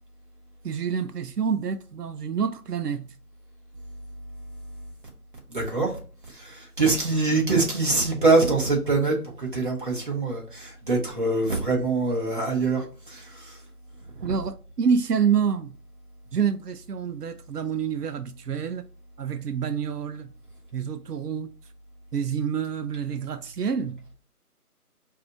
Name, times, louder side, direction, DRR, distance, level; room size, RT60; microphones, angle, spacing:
voice 1, 0.6-3.1 14.2-15.8 16.3-18.8 19.2-20.3 20.7-21.5 22.1-24.0, right 7 dB, 90° right, 0.6 m, -27 dB
voice 2, 5.5-6.0 6.4-13.2 14.3-14.4, right 3 dB, 35° right, 1.1 m, -24 dB
4.8 x 2.7 x 2.4 m
figure-of-eight pair, 160°, 46 cm